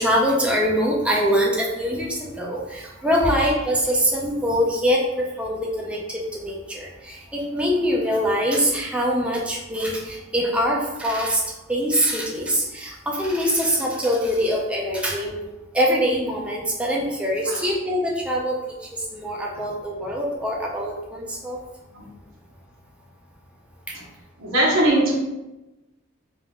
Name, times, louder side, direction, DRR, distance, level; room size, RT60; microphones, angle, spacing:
voice 1, 0.0-6.0 6.4-11.4 11.7-15.4 15.7-18.5 19.1-21.6, equal, 5° right, -3 dB, 0.5 m, -23 dB
voice 2, 24.4-25.1, right 1 dB, 85° right, -5 dB, 1.2 m, -20 dB
3.5 x 2.5 x 3.6 m, 0.98 s
head